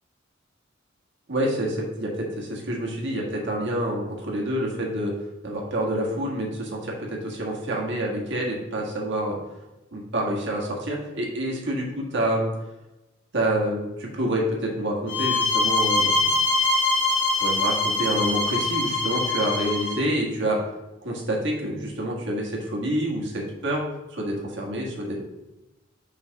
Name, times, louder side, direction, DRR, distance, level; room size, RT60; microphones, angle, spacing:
voice 1, 1.3-5.1 5.4-9.4 9.9-12.5 13.3-16.1 17.4-20.6 21.0-23.8 24.1-25.2, right 1 dB, 65° right, -1 dB, 1.6 m, -27 dB
sound 1, 15.1-20.0, left 3 dB, 65° left, 1.5 m, -23 dB
5.8 x 3.5 x 5.7 m, 1.0 s
head